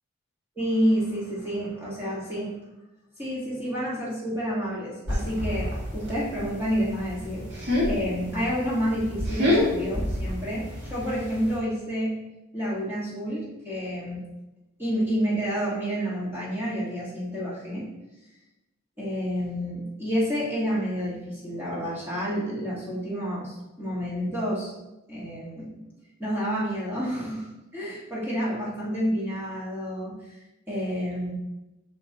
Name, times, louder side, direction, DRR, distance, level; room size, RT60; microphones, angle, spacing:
voice 1, 0.6-2.5 3.2-7.5 7.9-12.1 12.5-14.2 14.8-17.8 19.0-24.7 25.1-25.8 26.2-31.3, equal, 10° right, -8 dB, 1.6 m, -29 dB
sound 1, 5.1-11.6, left 1 dB, 55° right, 1.9 m, -29 dB
7.9 x 5.4 x 2.9 m, 1.0 s
head